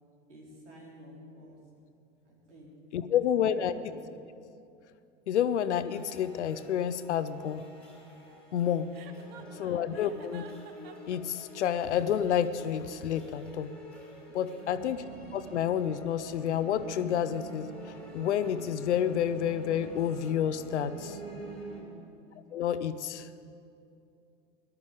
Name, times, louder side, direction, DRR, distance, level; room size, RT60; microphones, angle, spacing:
voice 1, 0.3-1.6 2.2-2.7 3.0-3.1 3.4-4.1 9.2-10.3 21.7-22.2, equal, 75° right, -3 dB, 3.9 m, -52 dB
voice 2, 2.9-3.7 5.3-7.6 8.5-8.9 9.6-10.4 11.1-13.7 14.3-15.0 15.3-21.2 22.5-23.3, left 9 dB, 70° left, 13 dB, 0.7 m, -29 dB
sound 1, 5.8-21.8, right 2 dB, 5° left, 3.6 m, -47 dB
Chuckle chortle, 8.9-11.2, right 8 dB, 55° right, 1.1 m, -51 dB
18.0 x 12.0 x 5.0 m, 2.6 s
figure-of-eight pair, 80°, 36 cm